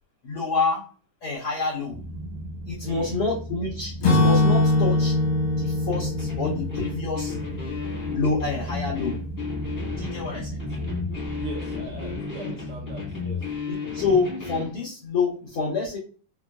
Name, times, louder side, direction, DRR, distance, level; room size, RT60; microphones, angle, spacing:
voice 1, 0.2-0.8 1.2-2.0 2.7-5.1 5.6-7.3 8.1-9.2 10.0-10.6 13.9-16.0, left 4 dB, 85° left, -4 dB, 1.2 m, -27 dB
sound 1, 1.9-12.2, right 1 dB, 60° right, 1.3 m, -36 dB
voice 2, 2.8-3.2 10.5-11.1 11.3-13.5, right 4 dB, 90° right, -3 dB, 1.2 m, -41 dB
Acoustic guitar / Strum, 4.0-8.0, left 2 dB, 65° left, 1.2 m, -23 dB
sound 2, 5.9-14.8, left 5 dB, 40° left, 0.7 m, -33 dB
5.6 x 2.3 x 2.3 m, 0.39 s
omnidirectional pair, 3.9 m